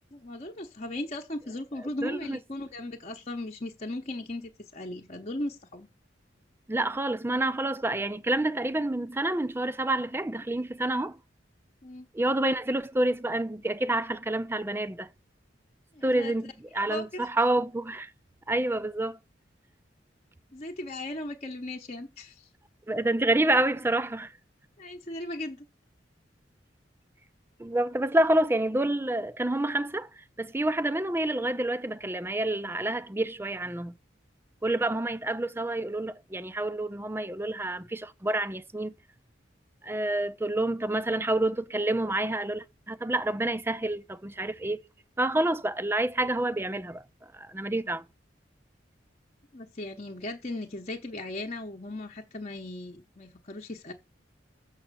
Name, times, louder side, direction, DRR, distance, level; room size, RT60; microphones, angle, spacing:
voice 1, 0.1-5.9 11.8-12.1 15.9-16.3 16.7-17.3 20.5-22.5 24.8-25.6 49.5-53.9, left 1 dB, 40° left, 1.0 m, -37 dB
voice 2, 2.0-2.4 6.7-11.2 12.1-15.1 16.0-18.1 18.5-19.2 22.9-24.3 27.6-33.9 34.6-38.9 39.8-44.8 45.2-48.1, right 1 dB, 15° right, 0.5 m, -28 dB
7.2 x 5.7 x 6.6 m
head